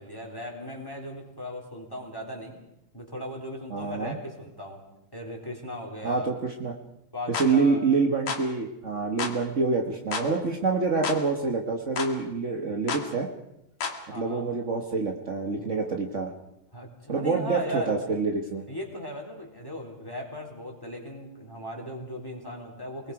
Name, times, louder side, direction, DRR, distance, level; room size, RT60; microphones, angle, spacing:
voice 1, 0.0-2.6 2.9-4.8 5.1-6.3 7.1-7.8 14.1-14.5 15.6-15.7 16.7-18.0 18.7-23.1, left 1 dB, 5° left, 0 dB, 3.5 m, -37 dB
voice 2, 3.7-4.1 6.0-6.8 7.4-13.3 14.1-16.3 17.1-18.6, right 4 dB, 65° right, 1 dB, 0.7 m, -26 dB
sound 1, 7.3-7.5 8.3-8.5 9.2-9.4 10.1-10.3 11.0-11.2 12.0-12.1 12.9-13.1 13.8-14.0, left 5 dB, 50° left, 2.5 m, -31 dB
28.5 x 20.5 x 4.9 m, 0.86 s
omnidirectional pair, 3.7 m